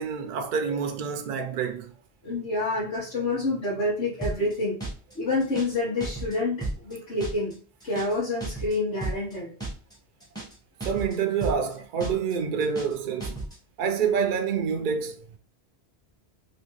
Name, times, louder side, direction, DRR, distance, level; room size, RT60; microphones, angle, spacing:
voice 1, 0.0-1.9 10.8-13.4 13.8-15.2, right 6 dB, 60° right, 0.6 m, -27 dB
voice 2, 2.2-4.8 5.1-9.5, left 2 dB, 85° left, 1.7 m, -28 dB
sound 1, 4.2-4.5 4.8-5.1 5.4-5.8 6.0-6.4 6.6-6.9 7.2-7.5 7.8-8.2 8.4-8.8 9.0-9.3 9.6-9.9 10.2-10.6 10.8-11.2 11.4-11.7 12.0-12.3 12.6-13.0 13.2-13.6, right 2 dB, 5° left, 1.0 m, -33 dB
3.3 x 2.9 x 3.0 m
omnidirectional pair, 1.1 m